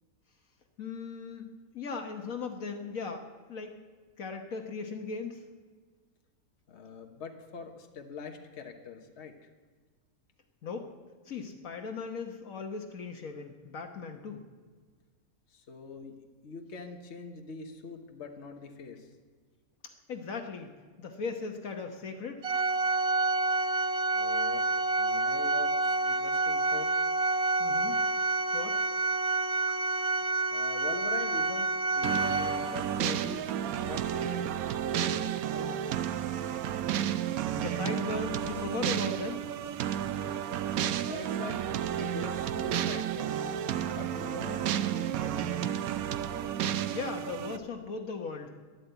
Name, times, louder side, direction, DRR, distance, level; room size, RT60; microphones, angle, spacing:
voice 1, 0.8-3.8 4.2-5.4 10.6-10.9 11.3-14.5 20.1-22.4 27.6-28.0 28.5-28.8 37.6-39.4 46.9-48.5, left 4 dB, 65° left, 4 dB, 1.5 m, -38 dB
voice 2, 6.7-9.5 15.5-19.1 24.1-24.7 25.0-26.9 29.6-29.8 30.5-34.5 34.9-35.9 40.0-40.4 41.1-43.5 44.0-45.4, left 5 dB, 50° left, 4 dB, 1.4 m, -44 dB
Organ, 22.4-33.0, right 3 dB, 50° right, 1.1 m, -28 dB
sound 1, 32.0-47.6, right 10 dB, 75° right, 1.1 m, -32 dB
12.5 x 11.5 x 8.0 m, 1.5 s
omnidirectional pair, 1.6 m